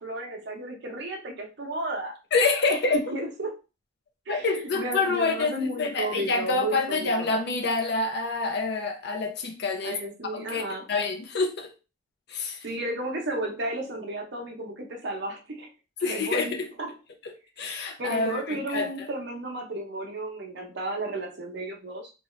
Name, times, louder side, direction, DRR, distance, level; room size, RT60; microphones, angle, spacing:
voice 1, 0.0-2.2 2.7-3.6 4.3-7.3 9.8-10.9 12.6-15.7 16.0-16.9 18.0-22.1, right 1 dB, 55° right, 0.7 m, -33 dB
voice 2, 2.3-3.0 4.3-10.0 10.3-10.6 10.9-11.7 12.3-12.7 16.0-16.7 17.2-19.1, left 3 dB, 50° left, 0.5 m, -27 dB
2.6 x 2.3 x 3.1 m
head